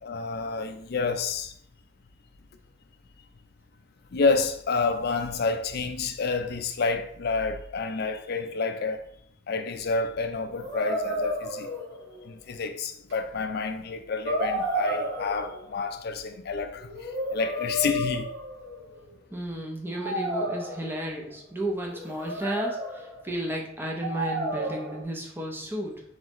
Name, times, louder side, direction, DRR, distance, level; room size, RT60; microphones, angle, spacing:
voice 1, 0.0-1.5 4.1-9.0 9.5-11.7 12.2-18.3, left 4 dB, 50° left, 0.4 m, -29 dB
sound 1, 10.5-12.3 13.1-13.2 14.2-15.8 16.8-19.0 19.9-21.2 21.9-23.2 24.0-25.0, equal, 60° right, 1.5 m, -31 dB
voice 2, 19.3-26.0, right 1 dB, 10° right, 0.7 m, -33 dB
3.9 x 3.9 x 3.0 m
head